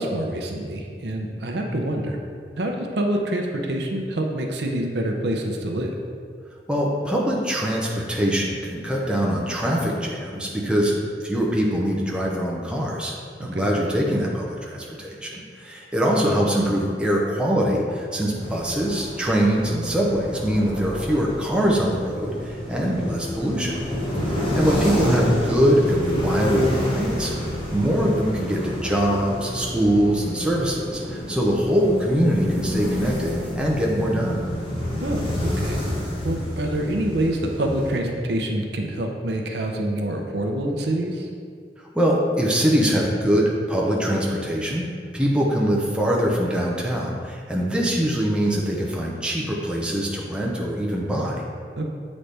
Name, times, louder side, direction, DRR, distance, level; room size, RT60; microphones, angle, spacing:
voice 1, 0.0-2.2 2.6-5.9 13.4-13.7 24.2-24.5 35.0-35.8 36.2-41.3 51.8-51.9, right 1 dB, 70° right, 2 dB, 0.6 m, -26 dB
voice 2, 6.7-10.9 11.2-13.1 13.4-23.8 24.5-27.3 27.7-34.4 41.9-44.9 45.1-51.4, equal, 5° right, -3 dB, 0.7 m, -23 dB
sound 1, 18.4-37.9, left 1 dB, 30° left, 1.2 m, -29 dB
7.7 x 4.1 x 3.3 m, 2.2 s
head